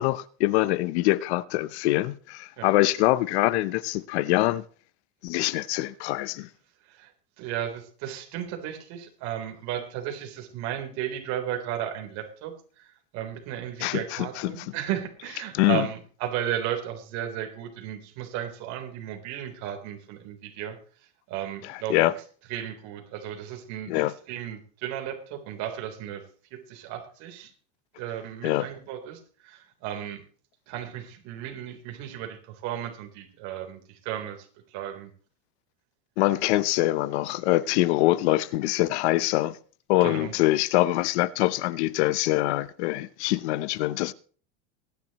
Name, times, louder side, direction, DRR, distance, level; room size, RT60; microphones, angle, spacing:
voice 1, 0.0-4.6 5.2-6.5 13.8-14.6 15.5-15.9 21.7-22.1 23.9-24.1 28.4-28.7 36.2-39.6 39.9-44.1, left 17 dB, 65° left, 0.8 m, -24 dB
voice 2, 7.4-20.8 21.3-22.1 22.5-26.3 26.5-27.5 28.0-30.2 30.7-35.1 40.0-40.3, right 10 dB, 50° right, 3.7 m, -34 dB
23.0 x 10.5 x 3.0 m
supercardioid pair, 155°, 35 cm